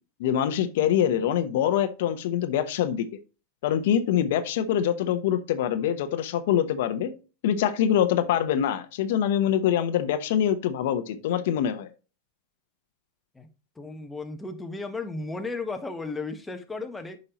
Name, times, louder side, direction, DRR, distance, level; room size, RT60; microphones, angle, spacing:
voice 1, 0.2-3.1 3.6-7.1 7.4-11.9, left 10 dB, 70° left, 10 dB, 0.9 m, -24 dB
voice 2, 13.8-17.2, left 3 dB, 10° left, 5 dB, 1.1 m, -34 dB
8.4 x 5.3 x 3.0 m, 0.32 s
hypercardioid pair, 115°, 0 cm